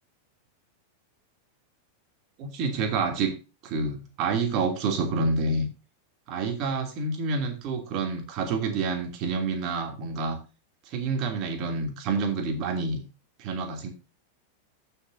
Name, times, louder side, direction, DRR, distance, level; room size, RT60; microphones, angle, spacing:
voice 1, 2.4-3.3 3.6-5.7 6.3-10.4 10.8-13.0 13.4-13.9, right 4 dB, 40° right, 5 dB, 2.9 m, -28 dB
14.5 x 6.8 x 2.7 m, 0.31 s
figure-of-eight pair, 90°, 0 cm